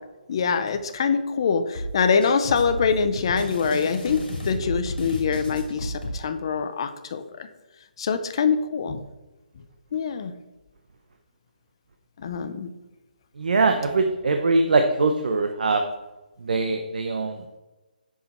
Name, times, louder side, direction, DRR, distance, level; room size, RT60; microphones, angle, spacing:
voice 1, 0.3-7.5 8.0-9.0 9.9-10.3 12.2-12.7, left 5 dB, 30° left, 10 dB, 0.5 m, -24 dB
sound 1, 1.7-6.1, left 1 dB, 70° left, 2.8 m, -32 dB
voice 2, 13.4-15.8 16.5-17.3, right 3 dB, 60° right, 5 dB, 0.7 m, -22 dB
6.9 x 6.3 x 4.3 m, 1.1 s
hypercardioid pair, 175°, 5 cm